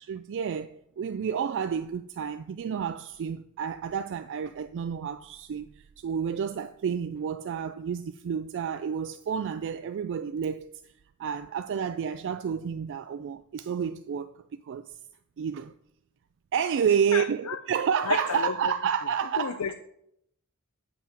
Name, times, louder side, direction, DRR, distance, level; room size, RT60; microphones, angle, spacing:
voice 1, 0.0-10.7 11.2-15.0 15.4-15.7 16.5-19.6, right 7 dB, 55° right, 0.3 m, -30 dB
voice 2, 17.1-17.6 18.1-18.5 19.4-19.7, left 6 dB, 75° left, 0.5 m, -30 dB
8.8 x 5.9 x 5.8 m
head